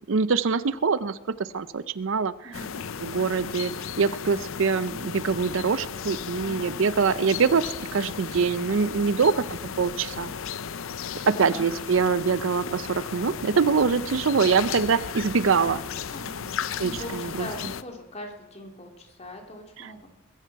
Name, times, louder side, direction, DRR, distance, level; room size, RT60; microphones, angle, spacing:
voice 1, 0.1-2.3 3.0-10.3 11.3-15.8 16.8-17.5 19.8-19.9, right 5 dB, 65° right, 16 dB, 0.5 m, -24 dB
voice 2, 2.4-2.8 6.4-6.8 11.3-11.7 16.1-20.1, left 1 dB, 30° left, 2 dB, 2.4 m, -42 dB
sound 1, 2.5-17.8, left 7 dB, 70° left, 0.6 m, -35 dB
21.0 x 14.0 x 4.6 m, 0.99 s
head